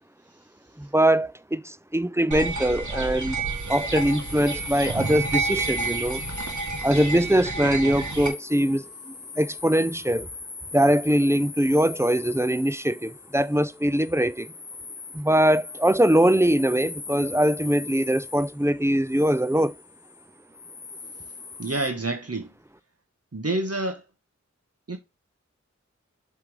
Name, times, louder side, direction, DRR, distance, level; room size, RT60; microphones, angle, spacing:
voice 1, 0.8-3.4 3.7-6.2 6.8-10.3 10.7-14.5 15.1-19.7, right 1 dB, 10° right, 0.4 m, -22 dB
sound 1, 2.3-8.3, right 3 dB, 80° right, 1.5 m, -29 dB
sound 2, 3.4-21.9, left 4 dB, 70° left, 0.8 m, -41 dB
voice 2, 21.6-22.5 23.3-24.0 24.9-25.0, right 2 dB, 55° right, 1.2 m, -28 dB
7.5 x 3.4 x 4.7 m
wide cardioid pair, 40°, 29 cm